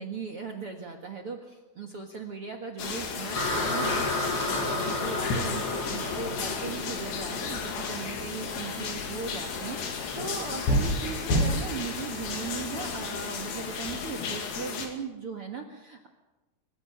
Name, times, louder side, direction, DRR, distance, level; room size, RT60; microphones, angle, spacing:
voice 1, 0.0-16.1, right 5 dB, 55° right, 2 dB, 1.6 m, -38 dB
sound 1, 2.8-14.9, left 5 dB, 85° left, 4.7 m, -34 dB
sound 2, 3.3-12.5, left 2 dB, 30° left, 5.2 m, -34 dB
sound 3, 8.7-13.6, equal, 65° left, 9.4 m, -31 dB
24.0 x 23.0 x 5.8 m, 1.1 s
omnidirectional pair, 4.9 m